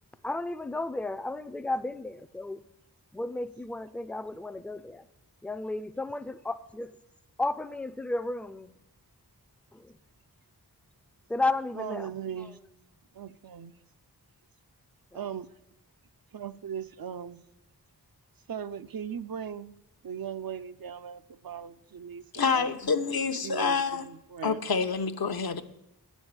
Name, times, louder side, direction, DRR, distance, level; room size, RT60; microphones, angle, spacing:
voice 1, 0.2-2.6 3.1-5.1 5.4-6.9 7.4-8.7 9.7-10.0 11.3-12.5 15.1-15.3, left 2 dB, 5° left, 0.4 m, -33 dB
voice 2, 11.8-12.6 13.1-13.8 15.1-15.5 16.3-17.4 18.5-19.7 20.0-22.7 23.4-24.6, right 8 dB, 60° right, 0.6 m, -38 dB
voice 3, 22.3-24.0 24.4-25.6, left 5 dB, 65° left, 0.8 m, -27 dB
9.9 x 6.3 x 8.7 m
wide cardioid pair, 75°, 40 cm